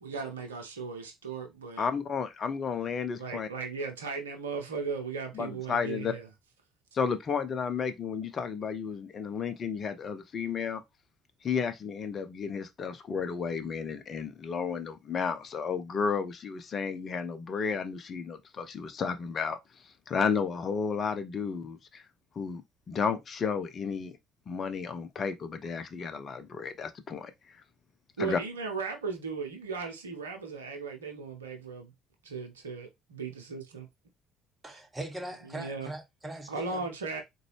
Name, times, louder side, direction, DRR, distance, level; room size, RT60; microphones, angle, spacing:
voice 1, 0.0-1.8 3.2-6.3 28.2-31.9 32.2-33.9 35.4-35.9 36.5-37.2, right 5 dB, 80° right, 0.7 m, -37 dB
voice 2, 1.8-3.5 5.3-6.1 6.9-10.8 11.4-19.6 19.8-22.0 22.4-22.6 22.9-24.2 24.5-27.6 28.2-28.4, left 6 dB, 40° left, 0.6 m, -32 dB
voice 3, 34.6-36.9, right 1 dB, 15° right, 1.0 m, -40 dB
3.8 x 2.3 x 3.2 m
figure-of-eight pair, 55°, 0 cm